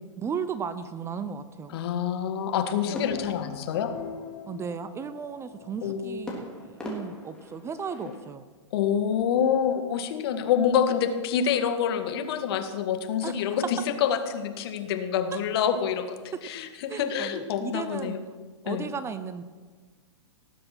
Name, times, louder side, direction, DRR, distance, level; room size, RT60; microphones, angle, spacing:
voice 1, 0.2-1.8 2.9-3.0 4.5-8.4 13.2-13.3 15.3-15.4 16.9-18.2 18.6-19.4, right 6 dB, 15° right, 12 dB, 0.7 m, -35 dB
voice 2, 1.7-3.9 5.8-6.2 8.7-18.2 18.7-18.9, left 8 dB, 55° left, 8 dB, 1.7 m, -27 dB
sound 1, 2.4-6.7, left 9 dB, 35° left, 1.1 m, -44 dB
sound 2, 2.9-4.5 6.3-8.3, left 1 dB, 5° left, 3.4 m, -41 dB
18.5 x 7.7 x 6.1 m, 1.4 s
hypercardioid pair, 115°, 16 cm